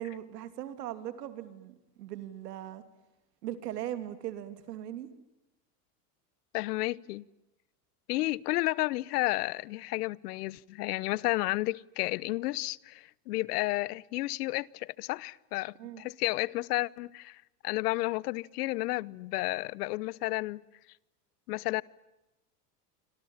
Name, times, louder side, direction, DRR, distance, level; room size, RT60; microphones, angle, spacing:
voice 1, 0.0-2.8 3.4-5.1 15.8-16.0, right 12 dB, 85° right, 3.2 m, -39 dB
voice 2, 6.5-7.2 8.1-20.6 21.5-21.8, left 19 dB, 75° left, 0.9 m, -32 dB
29.5 x 26.0 x 7.4 m
supercardioid pair, 110°, 47 cm